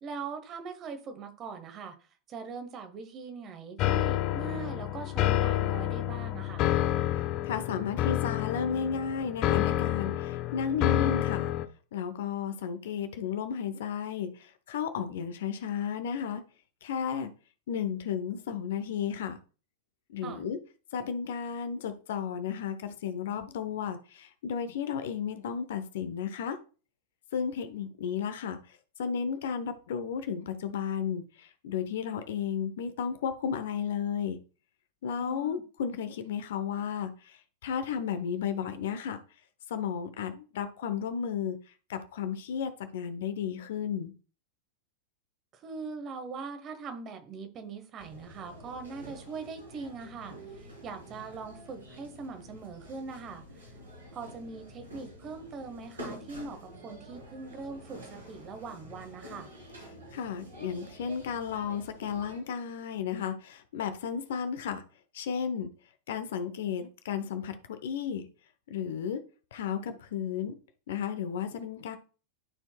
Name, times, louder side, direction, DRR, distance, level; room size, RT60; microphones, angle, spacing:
voice 1, 0.0-6.7 20.2-20.4 35.2-35.6 45.5-53.8 54.1-59.5, right 5 dB, 30° right, 1.3 m, -41 dB
sound 1, 3.8-11.7, left 13 dB, 40° left, 0.5 m, -29 dB
voice 2, 7.1-11.5 11.9-16.4 16.8-17.3 17.7-19.4 20.1-20.6 20.9-26.6 27.3-34.4 35.0-39.2 39.7-41.6 41.9-44.1 60.1-64.8 65.1-65.7 66.1-68.3 68.7-69.2 69.5-70.5 70.9-72.0, left 7 dB, 60° left, 0.8 m, -33 dB
sound 2, 48.0-62.4, equal, 75° right, 3.4 m, -48 dB
12.5 x 4.5 x 2.3 m
figure-of-eight pair, 90°, 0 cm